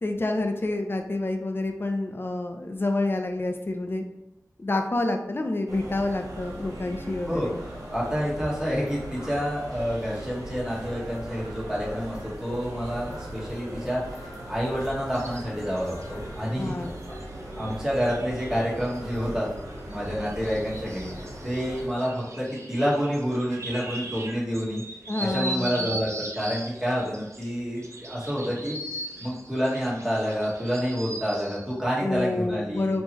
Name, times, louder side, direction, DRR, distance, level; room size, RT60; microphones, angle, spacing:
voice 1, 0.0-4.1 4.6-7.6 16.6-16.9 25.1-25.9 32.0-33.0, left 2 dB, 40° left, 4 dB, 0.4 m, -28 dB
sound 1, 5.7-21.9, equal, 90° right, 1.1 m, -39 dB
voice 2, 7.9-17.2 17.6-19.5 19.9-21.1 21.4-24.8 25.2-28.8 29.2-33.0, equal, 10° right, -6 dB, 1.4 m, -28 dB
sound 2, 15.1-31.7, right 1 dB, 55° right, 0.6 m, -40 dB
3.7 x 3.0 x 2.9 m, 0.92 s
wide cardioid pair, 65°, 6 cm